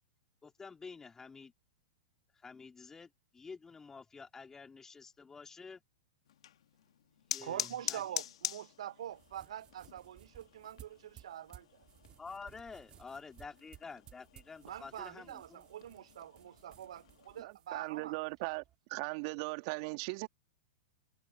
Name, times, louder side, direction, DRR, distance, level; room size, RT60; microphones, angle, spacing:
voice 1, 0.4-1.5 2.4-5.8 7.3-8.0 12.2-15.7, left 5 dB, 15° left, 2.3 m, -49 dB
sound 1, 6.3-17.4, left 11 dB, 70° left, 2.1 m, -46 dB
voice 2, 7.4-11.7 14.6-18.2, right 11 dB, 70° right, 0.6 m, -45 dB
sound 2, 9.1-18.7, right 11 dB, 30° right, 2.1 m, -60 dB
voice 3, 17.4-18.6 18.9-20.3, right 27 dB, 50° right, 2.0 m, -38 dB
hypercardioid pair, 115°, 3 cm